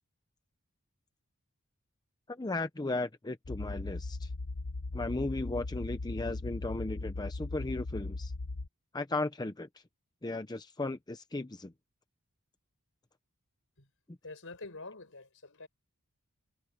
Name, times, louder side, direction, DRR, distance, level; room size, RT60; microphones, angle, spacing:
voice 1, 2.3-4.3 4.9-8.3 8.9-9.7 10.2-11.7, left 2 dB, 20° left, 0.7 m, -36 dB
sound 1, 3.5-8.7, left 2 dB, 85° left, 1.0 m, -38 dB
voice 2, 14.2-15.7, left 3 dB, 60° left, 5.7 m, -46 dB
head